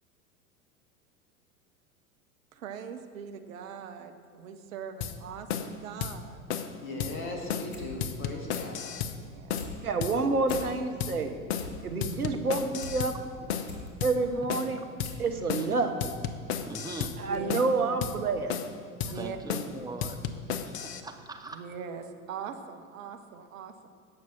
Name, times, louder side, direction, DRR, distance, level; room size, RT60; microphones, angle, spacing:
voice 1, 2.5-6.4 9.1-9.9 17.3-17.6 19.0-19.4 21.5-23.9, right 6 dB, 60° right, 6 dB, 1.1 m, -41 dB
sound 1, 5.0-5.2 5.5-5.7 6.0-6.2 6.5-6.7 7.0-7.2 7.5-7.7 8.0-9.2 9.5-9.7 10.0-10.2 10.5-10.7 11.0-11.2 11.5-11.7 12.0-13.2 13.5-13.7 14.0-14.2 14.5-14.7 15.0-15.2 15.5-15.7 16.0-17.2 17.5-17.7 18.0-18.2 18.5-18.7 19.0-19.2 19.5-19.7 20.0-21.0, left 8 dB, 50° left, 0.9 m, -33 dB
voice 2, 6.8-8.9, left 2 dB, 25° left, 1 dB, 2.5 m, -38 dB
sound 2, 7.7-7.9 8.2-8.8 9.2-9.7 10.1-10.2 10.4-11.0 11.3-13.0 13.4-13.9 14.5-14.6 15.0-15.3 15.6-15.7, left 3 dB, 70° left, 2.3 m, -44 dB
voice 3, 9.8-11.3 11.8-13.1 14.0-14.8 15.2-16.0 17.2-18.5, right 3 dB, 80° right, 6 dB, 1.2 m, -28 dB
voice 4, 16.5-17.2 19.0-20.2 20.6-21.6, right 3 dB, 10° right, 4 dB, 0.6 m, -42 dB
16.5 x 6.0 x 6.1 m, 2.1 s
figure-of-eight pair, 85°, 44 cm